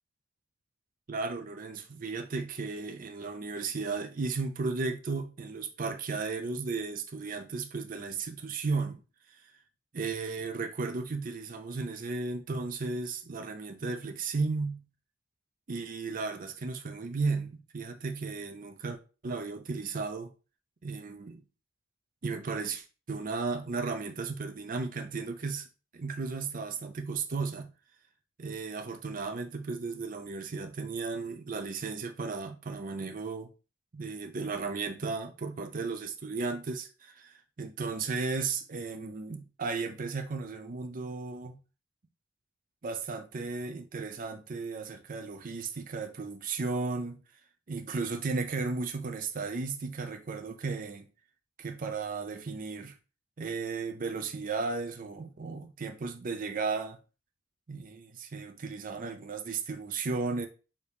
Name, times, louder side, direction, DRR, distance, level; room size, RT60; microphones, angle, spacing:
voice 1, 1.1-9.0 9.9-14.8 15.7-19.0 19.2-20.3 20.8-21.4 22.2-25.7 25.9-27.7 28.4-33.5 33.9-41.6 42.8-47.2 47.7-51.1 51.6-52.9 53.4-57.0 57.7-60.5, right 4 dB, 45° right, 0.5 m, -35 dB
4.6 x 2.8 x 3.3 m
head